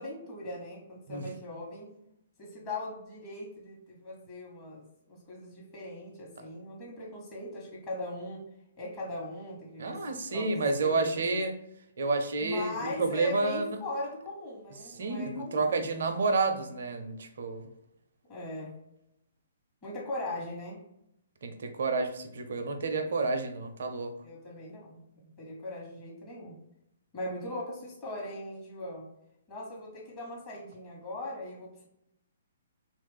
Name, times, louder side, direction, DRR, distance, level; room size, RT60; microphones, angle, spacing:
voice 1, 0.0-1.9 2.4-8.5 8.8-11.4 12.4-15.9 18.3-18.8 19.8-20.8 24.2-26.6 27.1-29.1 29.5-31.9, left 2 dB, 30° left, -3 dB, 1.1 m, -40 dB
voice 2, 9.8-11.5 12.0-13.8 14.8-17.7 21.4-24.1, right 3 dB, 60° right, 7 dB, 0.5 m, -30 dB
3.0 x 2.4 x 3.4 m, 0.80 s
figure-of-eight pair, 125°, 0 cm